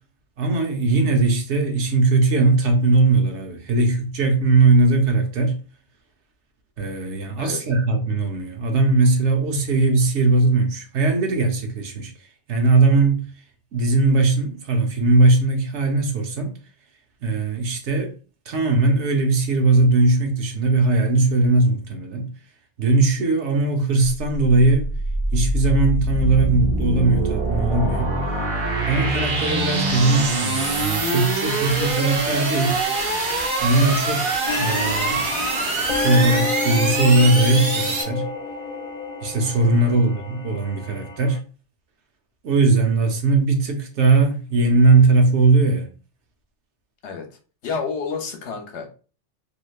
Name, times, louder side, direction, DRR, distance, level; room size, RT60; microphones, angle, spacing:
voice 1, 0.4-5.6 6.8-12.1 12.5-13.2 13.7-16.5 17.2-18.1 18.5-22.3 22.8-24.9 25.3-28.1 28.9-32.8 33.6-35.2 35.9-38.3 39.2-41.4 42.4-45.9, right 3 dB, 75° right, 1.0 m, -19 dB
sound 1, 24.0-38.0, right 2 dB, 50° right, 0.9 m, -24 dB
sound 2, 34.5-41.4, left 4 dB, 50° left, 0.6 m, -29 dB
voice 2, 47.0-48.9, left 5 dB, 70° left, 1.0 m, -30 dB
3.2 x 2.7 x 2.4 m
omnidirectional pair, 1.2 m